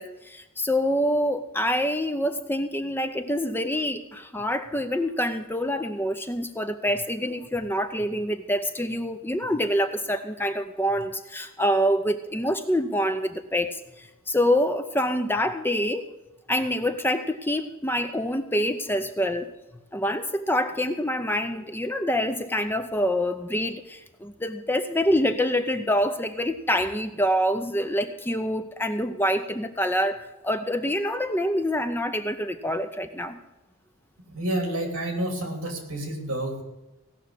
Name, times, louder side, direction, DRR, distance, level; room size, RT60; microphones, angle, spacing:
voice 1, 0.0-16.0 16.5-19.5 19.9-33.4, equal, 10° left, 9 dB, 0.5 m, -26 dB
voice 2, 34.3-36.6, right 1 dB, 60° right, 4 dB, 3.0 m, -29 dB
16.5 x 6.0 x 8.3 m, 0.99 s
head